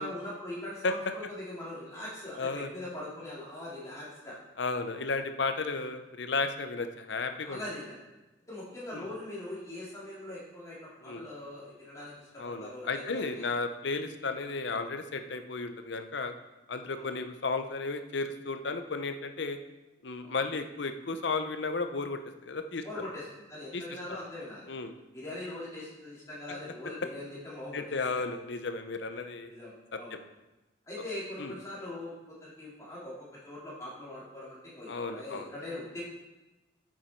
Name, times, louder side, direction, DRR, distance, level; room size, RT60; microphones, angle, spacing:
voice 1, 0.0-4.4 7.4-8.0 8.5-13.2 16.9-17.1 20.2-20.4 22.8-23.2 23.5-24.7 25.1-27.8 29.1-30.2 30.8-33.1 33.4-36.0, left 1 dB, 15° left, -8 dB, 3.2 m, -41 dB
voice 2, 2.4-2.7 4.6-7.6 8.9-9.1 11.0-11.2 12.4-16.3 16.7-19.6 20.0-23.1 23.7-23.8 24.1-24.2 24.7-24.9 26.5-26.6 26.8-27.1 27.7-29.5 29.9-30.2 31.4-31.5 34.9-35.5, left 3 dB, 75° left, 8 dB, 0.7 m, -34 dB
9.1 x 7.3 x 4.5 m, 1.1 s
head